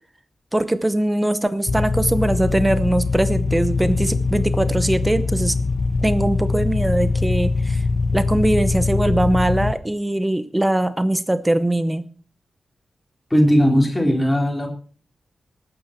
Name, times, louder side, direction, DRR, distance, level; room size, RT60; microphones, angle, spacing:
voice 1, 0.5-5.5 6.0-7.8 8.1-12.1, right 1 dB, 10° right, 12 dB, 0.8 m, -21 dB
sound 1, 1.7-9.7, left 3 dB, 45° left, 1.2 m, -22 dB
voice 2, 13.3-14.7, equal, 10° left, 0 dB, 3.6 m, -17 dB
19.5 x 9.4 x 4.5 m, 0.41 s
wide cardioid pair, 175°, 0 cm